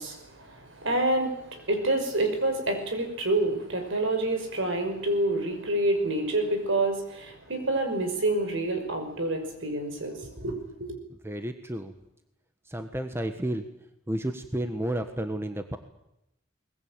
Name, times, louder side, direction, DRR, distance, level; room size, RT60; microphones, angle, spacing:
voice 1, 0.0-11.0, right 2 dB, 65° right, 6 dB, 5.5 m, -28 dB
voice 2, 11.2-11.9 12.7-13.6 14.1-15.8, right 1 dB, 10° right, 7 dB, 1.3 m, -31 dB
22.5 x 20.5 x 8.9 m, 0.84 s
head